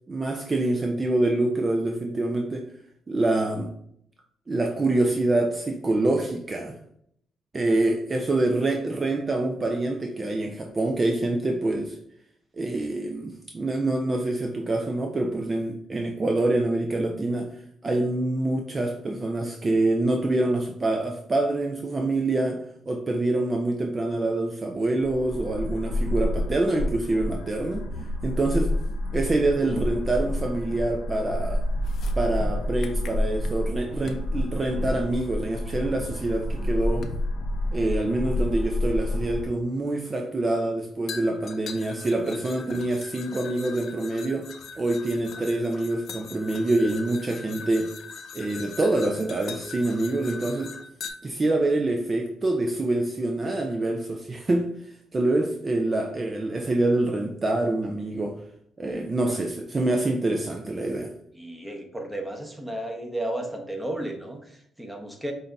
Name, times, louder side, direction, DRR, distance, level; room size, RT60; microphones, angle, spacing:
voice 1, 0.1-2.6 3.1-3.7 4.5-6.8 7.5-12.0 12.6-17.5 17.8-27.8 28.2-28.7 29.1-31.6 32.2-37.1 37.7-47.9 48.3-50.7 51.2-54.7 55.1-58.4 58.8-61.1, right 2 dB, 30° right, 0.5 m, -26 dB
sound 1, 25.0-39.5, left 1 dB, 90° left, 0.9 m, -29 dB
sound 2, 31.7-33.7 34.1-34.3 35.7-35.8 37.0-37.3 38.5-38.6 41.1-51.1, left 5 dB, 60° left, 0.5 m, -41 dB
voice 2, 61.3-65.3, right 1 dB, 5° right, 1.0 m, -33 dB
5.5 x 2.7 x 3.4 m
cardioid pair, 90°, 0 cm